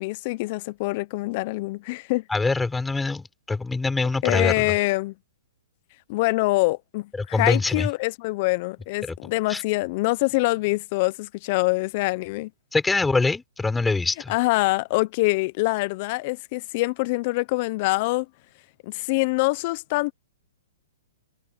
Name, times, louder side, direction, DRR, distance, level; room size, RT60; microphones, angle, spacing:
voice 1, 0.0-2.2 4.2-5.1 6.1-12.5 14.3-18.3 18.8-20.1, left 23 dB, 45° left, 0.8 m, -25 dB
voice 2, 2.3-4.7 7.2-7.9 9.5-9.6 12.7-14.3, left 3 dB, 5° left, 3.9 m, -24 dB
hypercardioid pair, 135°, 0 cm